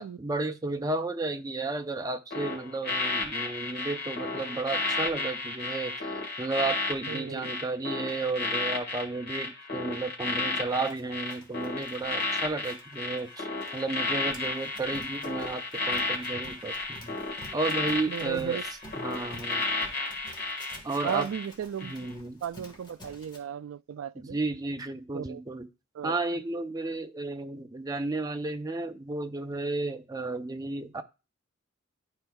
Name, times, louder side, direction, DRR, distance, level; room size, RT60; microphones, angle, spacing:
voice 1, 0.0-6.1 6.4-17.2 17.5-18.6 19.0-19.7 20.8-21.3 21.8-22.4 24.2-25.7 26.0-31.0, right 3 dB, 20° right, 0.5 m, -33 dB
sound 1, 2.3-21.5 21.8-22.1, left 3 dB, 50° left, 1.9 m, -32 dB
voice 2, 7.1-7.5 18.1-18.6 21.0-22.1 22.4-24.4 25.1-25.4 25.9-26.2, right 8 dB, 80° right, 0.3 m, -35 dB
Run, 10.9-23.4, left 1 dB, 25° left, 1.4 m, -51 dB
11.5 x 4.4 x 2.3 m
head